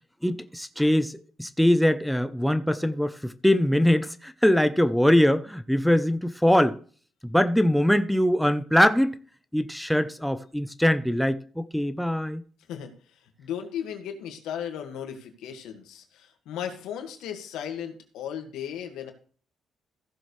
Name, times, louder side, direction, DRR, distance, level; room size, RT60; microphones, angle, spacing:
voice 1, 0.2-6.8 7.2-9.2 9.5-12.4, equal, ahead, 0.7 m, -22 dB
voice 2, 13.4-19.1, left 9 dB, 90° left, 1.9 m, -36 dB
15.5 x 7.0 x 3.3 m
cardioid pair, 90°, 0 cm